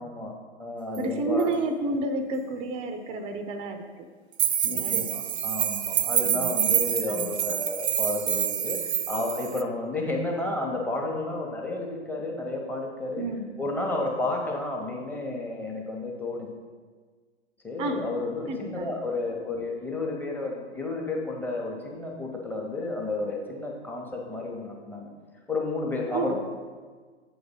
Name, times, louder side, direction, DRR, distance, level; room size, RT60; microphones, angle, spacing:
voice 1, 0.0-1.5 4.6-13.2 13.6-16.5 17.6-25.1 25.5-26.4, left 2 dB, 5° left, -1 dB, 0.9 m, -32 dB
voice 2, 1.0-3.8 4.7-5.1 6.2-6.6 7.1-7.3 13.2-13.4 17.8-18.1 18.5-18.9 26.1-26.3, right 2 dB, 15° right, 8 dB, 0.5 m, -30 dB
sound 1, 1.0-1.1 1.4-1.5 4.4-9.6, right 10 dB, 70° right, 0.5 m, -27 dB
8.0 x 3.9 x 5.3 m, 1.5 s
figure-of-eight pair, 105°, 34 cm